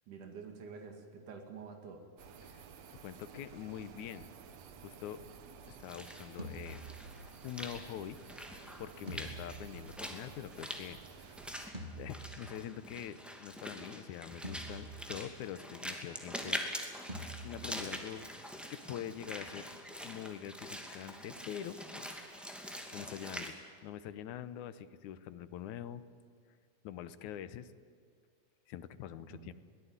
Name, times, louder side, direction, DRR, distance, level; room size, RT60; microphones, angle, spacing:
voice 1, 0.1-2.0 29.3-29.5, right 5 dB, 80° right, 4 dB, 3.8 m, -48 dB
sound 1, 2.2-11.7, right 6 dB, 60° right, 2.4 m, -53 dB
voice 2, 3.0-4.3 4.8-5.2 5.7-6.8 7.4-8.2 8.8-11.4 12.0-17.1 17.4-18.3 18.7-19.7 20.0-22.4 22.9-23.6 23.8-26.0 26.8-27.7 28.7-29.5, left 10 dB, 80° left, 14 dB, 2.3 m, -44 dB
Walk footsteps / Splash splatter, 5.6-23.5, equal, ahead, 2.0 m, -45 dB
sound 2, 6.4-7.6 9.1-10.6 11.7-12.9 14.4-15.7 17.1-18.2, right 1 dB, 15° right, 2.2 m, -47 dB
22.5 x 18.5 x 9.7 m, 2.1 s
omnidirectional pair, 3.5 m